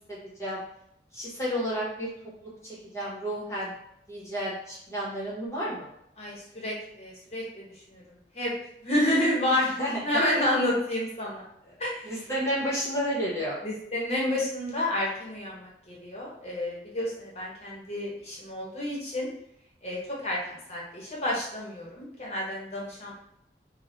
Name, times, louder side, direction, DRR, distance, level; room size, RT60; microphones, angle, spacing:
voice 1, 0.1-0.6 1.1-2.1 2.4-3.7 4.1-5.9 9.6-10.0 11.6-11.7 12.0-13.5, equal, 15° left, -7 dB, 1.3 m, -31 dB
voice 2, 6.2-7.6 7.9-8.0 8.3-8.5 8.8-9.7 10.0-11.4 11.8-12.1 13.6-19.3 19.8-23.1, left 1 dB, 35° left, -4 dB, 1.1 m, -29 dB
3.8 x 2.4 x 3.9 m, 0.76 s
head